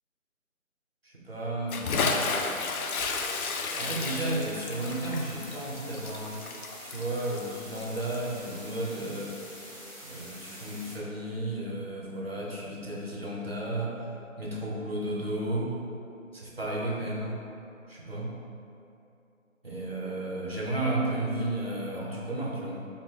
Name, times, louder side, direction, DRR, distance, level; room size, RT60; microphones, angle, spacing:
voice 1, 1.0-2.4 3.7-6.4 6.8-9.4 10.0-14.0 14.4-15.8 16.3-17.4 17.9-18.3 19.6-22.9, right 1 dB, 45° right, -4 dB, 0.6 m, -33 dB
Bathtub (filling or washing) / Splash splatter, 1.7-8.3, left 4 dB, 90° left, 0.5 m, -32 dB
sound 1, 2.8-11.0, equal, 35° left, 1.3 m, -46 dB
4.2 x 2.6 x 3.1 m, 2.7 s
figure-of-eight pair, 175°, 42 cm